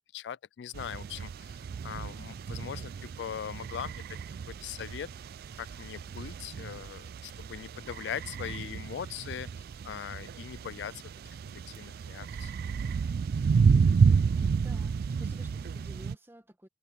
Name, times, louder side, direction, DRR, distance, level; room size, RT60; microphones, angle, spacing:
voice 1, 0.0-4.0 4.5-5.1 5.5-12.5, left 9 dB, 70° left, 0.3 m, -41 dB
sound 1, 0.7-16.2, right 5 dB, 60° right, 0.3 m, -30 dB
voice 2, 14.0-16.7, equal, 15° right, 1.7 m, -52 dB
head